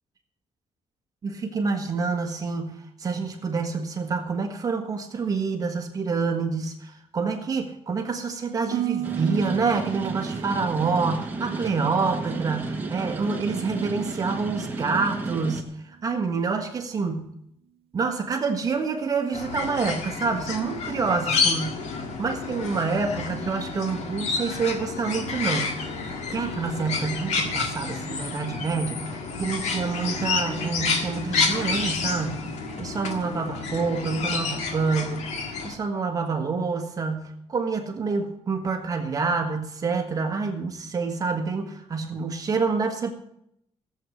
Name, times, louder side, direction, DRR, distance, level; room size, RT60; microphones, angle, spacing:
voice 1, 1.2-17.3 17.9-21.8 22.2-25.8 26.3-32.5 32.8-35.2 35.6-43.1, right 4 dB, 30° right, 4 dB, 1.5 m, -27 dB
Harp, 8.7-12.8 13.1-13.7 14.2-14.5, right 13 dB, 55° right, 0.7 m, -35 dB
sound 1, 9.0-15.6, right 3 dB, 15° right, 1.5 m, -33 dB
sound 2, 19.3-35.7, left 4 dB, 80° left, 1.9 m, -29 dB
16.0 x 7.9 x 6.2 m, 0.75 s
cardioid pair, 165°, 12 cm